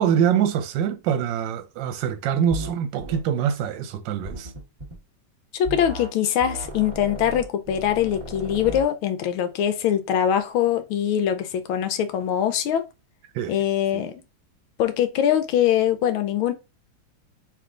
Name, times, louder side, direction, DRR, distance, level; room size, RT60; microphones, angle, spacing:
voice 1, 0.0-4.5 13.3-13.6 13.9-14.1, right 8 dB, 70° right, 1.2 m, -24 dB
sound 1, 2.5-2.7 3.0-3.2 4.2-5.0 5.6-6.1 6.4-8.9, right 1 dB, 25° right, 1.4 m, -35 dB
voice 2, 5.5-12.8 13.5-14.2 14.8-16.5, left 10 dB, 80° left, 1.4 m, -23 dB
3.5 x 3.1 x 3.7 m
omnidirectional pair, 2.3 m